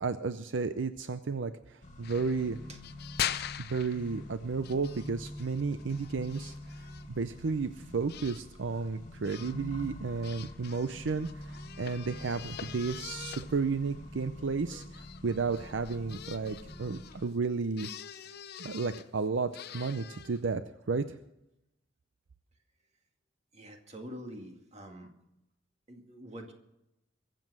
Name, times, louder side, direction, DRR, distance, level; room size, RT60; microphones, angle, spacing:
voice 1, 0.0-2.6 3.7-17.9 18.6-20.6 20.9-21.2, right 4 dB, 70° right, 11 dB, 0.6 m, -33 dB
Accelerating revving vroom, 1.8-17.2, left 1 dB, 40° left, 2.1 m, -46 dB
sound 1, 2.0-4.3 4.6-7.0 8.1-8.4 9.2-9.6 10.2-17.3 17.8-19.0 19.5-20.5, left 10 dB, 55° left, 0.6 m, -43 dB
voice 2, 23.5-25.1 25.9-26.5, equal, 35° right, 3 dB, 2.1 m, -45 dB
23.0 x 7.6 x 6.2 m, 0.89 s
head